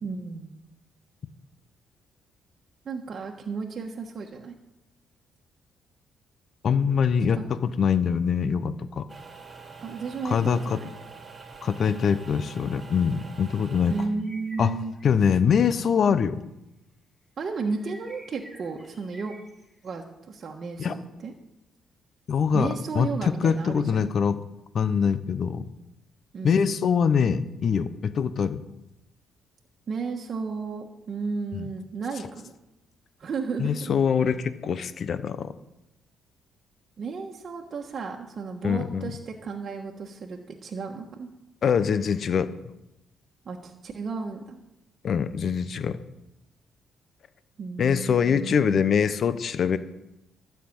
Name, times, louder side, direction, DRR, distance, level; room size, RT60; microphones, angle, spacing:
voice 1, 0.0-0.5 2.8-4.5 7.3-7.5 9.8-10.9 13.9-14.9 17.4-19.4 19.8-21.3 22.5-24.0 26.3-26.7 29.9-32.5 33.2-33.9 37.0-41.3 43.4-44.6 47.6-49.0, right 4 dB, 50° right, 1 dB, 1.3 m, -33 dB
voice 2, 6.6-9.1 10.2-10.8 11.6-14.0 14.6-14.7 15.0-16.4 20.8-20.9 22.3-24.4 24.7-25.6 26.4-28.6 31.5-31.7 33.6-35.5 38.6-39.1 41.6-42.5 45.0-46.0 47.8-49.8, left 6 dB, 55° left, 13 dB, 0.8 m, -24 dB
sound 1, 9.1-14.1, right 4 dB, 25° right, 2.3 m, -45 dB
sound 2, 14.0-15.1 15.4-15.6 16.0-16.1 17.6-19.9, equal, 15° left, 4.4 m, -49 dB
12.5 x 5.9 x 8.7 m, 0.90 s
cardioid pair, 90°, 0 cm